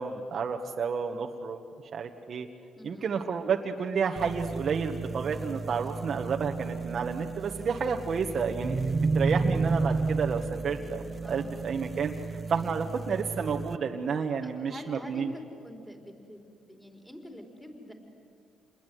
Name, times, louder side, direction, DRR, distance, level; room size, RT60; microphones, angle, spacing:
voice 1, 0.0-1.6 1.9-2.5 2.8-12.1 12.5-15.3, right 6 dB, 55° right, 2 dB, 1.5 m, -31 dB
voice 2, 2.8-3.2 11.2-11.6 14.4-17.9, equal, ahead, 2 dB, 4.4 m, -46 dB
sound 1, 4.2-13.8, right 4 dB, 30° right, 0.6 m, -32 dB
28.0 x 21.0 x 9.5 m, 2.6 s
cardioid pair, 90°, 0 cm